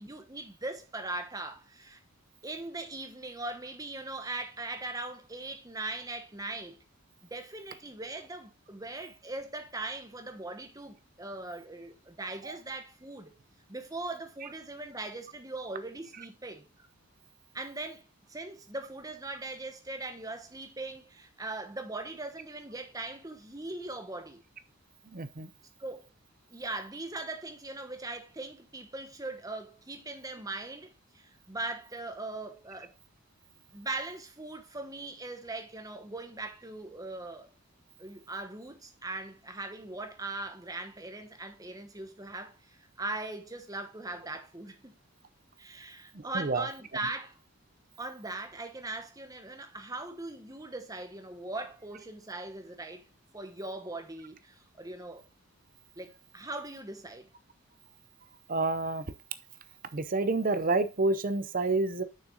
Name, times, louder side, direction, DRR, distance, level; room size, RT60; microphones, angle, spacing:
voice 1, 0.0-2.0 2.4-6.8 7.3-13.4 13.7-16.9 17.5-24.4 25.8-26.0 26.5-32.9 33.7-37.5 38.0-44.9 45.6-47.4 48.0-53.0 53.3-55.2 56.0-57.3, right 2 dB, 15° right, 1.0 m, -40 dB
voice 2, 25.1-25.5 46.1-46.7 58.5-59.0 59.9-62.0, right 3 dB, 40° right, 0.6 m, -28 dB
6.5 x 6.1 x 3.8 m
head